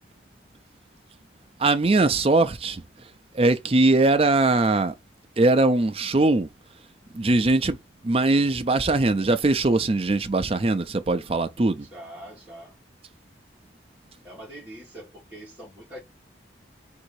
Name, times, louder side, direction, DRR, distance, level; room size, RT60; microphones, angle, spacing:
voice 1, 1.6-2.8 3.3-4.9 5.4-6.5 7.1-7.8 8.0-11.9, right 2 dB, 30° right, 0.5 m, -21 dB
voice 2, 11.9-12.7 14.2-16.0, right 1 dB, 10° right, 1.5 m, -43 dB
3.8 x 2.7 x 4.6 m
head